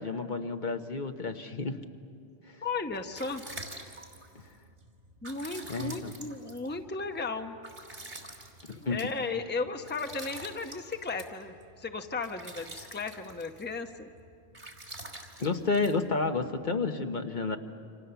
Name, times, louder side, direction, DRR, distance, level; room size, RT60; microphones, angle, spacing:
voice 1, 0.0-1.8 2.5-2.6 5.7-6.1 8.7-9.0 15.4-17.6, left 4 dB, 50° left, 5 dB, 1.2 m, -31 dB
voice 2, 2.6-3.4 5.2-7.6 8.8-14.1, left 4 dB, 10° left, 5 dB, 0.9 m, -35 dB
sound 1, 2.8-16.7, right 2 dB, 70° right, 3.2 m, -47 dB
29.0 x 26.0 x 7.0 m, 2.5 s
omnidirectional pair, 1.1 m